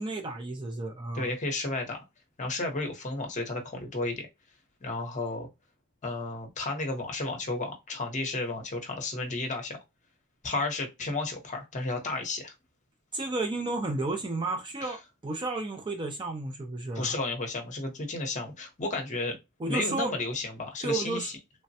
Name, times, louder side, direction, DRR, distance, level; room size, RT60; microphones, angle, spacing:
voice 1, 0.0-1.3 13.1-17.1 19.6-20.1 20.8-21.3, right 2 dB, 20° right, 0.4 m, -32 dB
voice 2, 1.1-2.0 2.4-4.3 4.8-5.5 6.0-9.8 10.4-12.5 14.8-14.9 16.9-19.4 19.7-21.4, left 2 dB, 35° left, 0.8 m, -32 dB
3.2 x 2.1 x 2.7 m
head